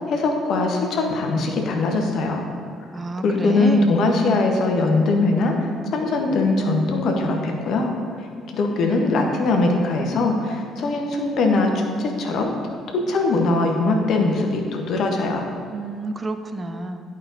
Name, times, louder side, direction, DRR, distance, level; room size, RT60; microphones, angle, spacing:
voice 1, 0.1-2.4 3.2-5.5 5.9-7.9 8.5-12.5 12.9-15.5, left 3 dB, 55° left, 2 dB, 1.0 m, -21 dB
voice 2, 2.9-4.0 15.7-17.1, right 2 dB, 30° right, 8 dB, 0.5 m, -29 dB
11.0 x 5.3 x 2.7 m, 2.3 s
figure-of-eight pair, 50°, 0 cm